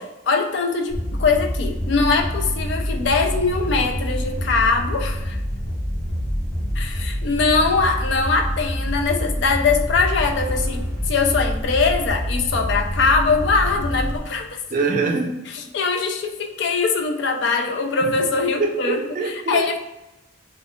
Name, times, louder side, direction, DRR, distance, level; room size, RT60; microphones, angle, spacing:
voice 1, 0.0-5.4 6.8-10.8 11.1-14.6 15.7-19.0 19.5-19.8, left 4 dB, 60° left, 4 dB, 0.3 m, -21 dB
sound 1, 0.9-14.2, equal, 40° left, 0.7 m, -26 dB
voice 2, 14.7-15.3 18.0-18.1 18.6-19.8, right 4 dB, 40° right, 2 dB, 0.4 m, -24 dB
2.3 x 2.2 x 3.6 m, 0.96 s
head